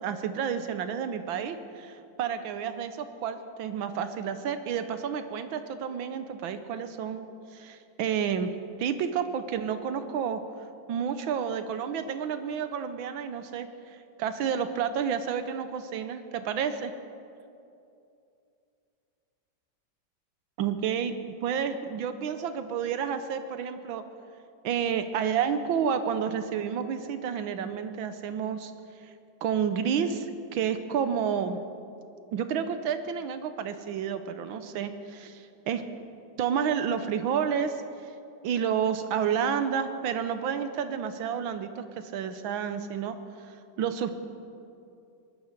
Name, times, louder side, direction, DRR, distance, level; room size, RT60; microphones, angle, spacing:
voice 1, 0.0-8.5 8.8-16.9 20.6-24.0 24.6-29.1 29.4-31.6 32.3-35.8 36.4-38.1 38.4-44.1, right 7 dB, 85° right, 10 dB, 1.6 m, -30 dB
19.0 x 11.5 x 6.6 m, 2.6 s
omnidirectional pair, 2.1 m